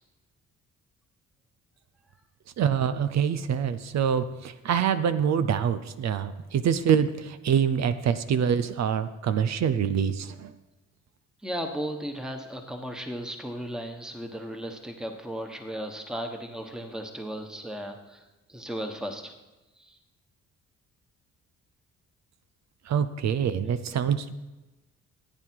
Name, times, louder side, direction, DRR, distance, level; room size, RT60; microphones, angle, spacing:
voice 1, 2.6-10.5 22.9-24.3, right 8 dB, 60° right, 12 dB, 0.7 m, -25 dB
voice 2, 11.4-19.3 19.8-20.0, equal, ahead, 4 dB, 1.3 m, -36 dB
14.5 x 8.9 x 4.7 m, 1.1 s
cardioid pair, 90°, 30 cm